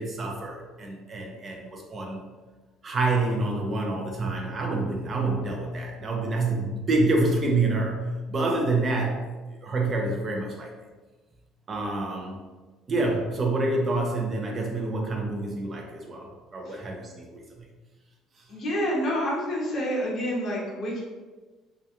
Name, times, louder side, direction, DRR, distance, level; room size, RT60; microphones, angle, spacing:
voice 1, 0.0-2.2 2.8-9.3 9.6-10.7 11.7-12.4 12.9-17.4 19.2-19.3, right 2 dB, 25° right, 0 dB, 0.4 m, -27 dB
voice 2, 18.5-21.0, equal, 40° left, -4 dB, 0.7 m, -28 dB
2.3 x 2.2 x 2.8 m, 1.3 s
cardioid pair, 160°, 0 cm